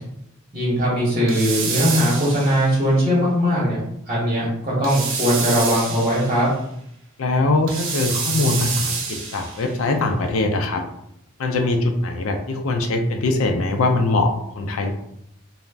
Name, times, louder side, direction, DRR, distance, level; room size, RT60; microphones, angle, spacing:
voice 1, 0.5-3.8 4.1-6.5, equal, 30° right, -7 dB, 0.9 m, -20 dB
sound 1, 1.3-2.8 4.8-6.5 7.7-9.7, right 5 dB, 65° right, 0.5 m, -27 dB
voice 2, 7.2-10.8 11.4-14.9, left 2 dB, 75° left, 5 dB, 0.4 m, -22 dB
2.4 x 2.1 x 3.2 m, 0.76 s
head